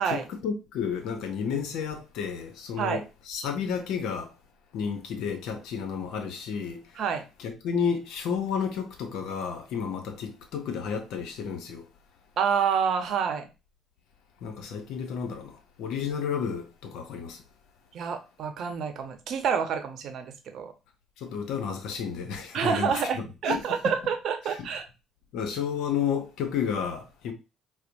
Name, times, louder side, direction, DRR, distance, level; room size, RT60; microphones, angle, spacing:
voice 1, 0.0-4.3 4.7-7.0 7.4-11.9 14.4-17.4 21.2-23.9 25.3-27.3, left 7 dB, 75° left, 0.7 m, -32 dB
voice 2, 12.4-13.5 17.9-20.7 22.5-24.8, right 7 dB, 65° right, 0.7 m, -28 dB
4.3 x 2.1 x 2.6 m
supercardioid pair, 65°, 0 cm